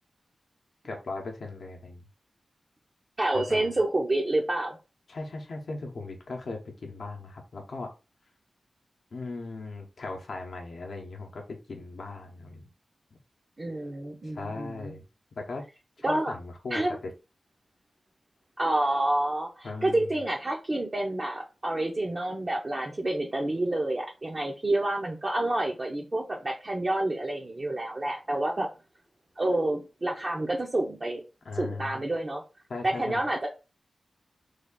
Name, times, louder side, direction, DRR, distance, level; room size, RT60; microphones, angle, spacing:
voice 1, 0.8-2.0 3.3-3.7 5.1-7.9 9.1-12.6 14.3-15.0 15.4-15.6 16.0-17.1 19.6-20.0 31.4-32.1 32.7-33.2, left 3 dB, 70° left, 0.7 m, -38 dB
voice 2, 3.2-4.8 13.6-14.9 16.0-16.3 16.7-17.0 18.6-28.7 29.4-31.2 31.5-32.4 32.8-33.5, right 1 dB, 35° right, 0.6 m, -28 dB
3.3 x 2.4 x 3.7 m
wide cardioid pair, 120°, 0 cm